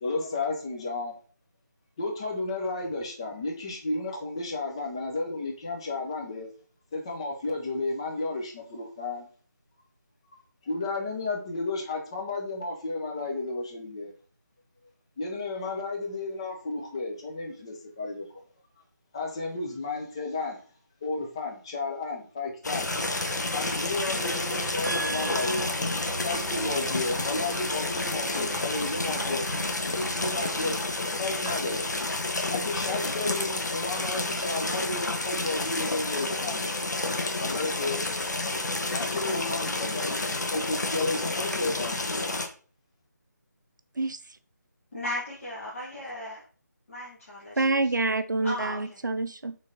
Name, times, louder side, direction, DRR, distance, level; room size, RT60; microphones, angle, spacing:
voice 1, 0.0-1.1 2.0-6.5 6.9-9.3 10.6-14.1 15.2-18.4 19.1-20.6 21.0-22.9 23.5-25.8 26.0-29.5 29.9-30.8 31.2-32.0 32.5-36.7 37.4-38.0 38.9-42.3, left 3 dB, 15° left, 0 dB, 0.5 m, -32 dB
sound 1, 22.6-42.5, left 2 dB, 70° left, 0.7 m, -30 dB
sound 2, 22.9-31.3, right 2 dB, 45° right, 1.3 m, -41 dB
voice 2, 24.8-25.7 44.0-44.4 47.6-49.6, right 3 dB, 90° right, 12 dB, 0.4 m, -28 dB
voice 3, 44.9-46.4 46.9-47.8 48.4-48.8, left 1 dB, 45° left, -6 dB, 1.0 m, -36 dB
3.7 x 3.2 x 2.5 m, 0.40 s
figure-of-eight pair, 160°, 10 cm